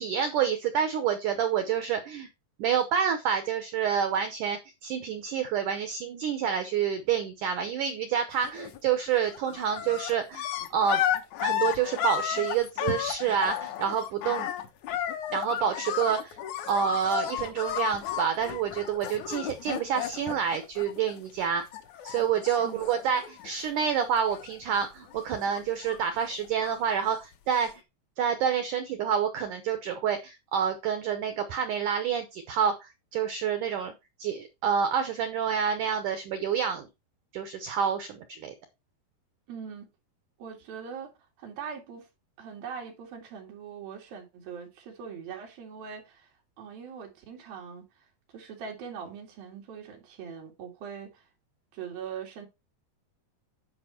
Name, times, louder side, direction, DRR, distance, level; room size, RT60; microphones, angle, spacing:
voice 1, 0.0-2.3 2.6-10.4 10.7-11.0 11.4-14.5 15.3-16.4 16.7-21.6 22.0-27.7 28.2-33.9 34.2-36.9 37.3-38.5, right 8 dB, 80° right, 1.8 m, -28 dB
sound 1, 8.4-8.9 9.1-21.5 21.7-23.9 24.1-24.8 25.1-26.9 27.6-27.7, left 10 dB, 85° left, 1.6 m, -33 dB
voice 2, 39.5-39.9 40.4-41.1 41.4-42.1 42.4-46.3 46.6-47.9 48.3-51.2 51.7-52.5, right 7 dB, 60° right, 4.0 m, -41 dB
10.0 x 5.1 x 4.4 m
omnidirectional pair, 4.9 m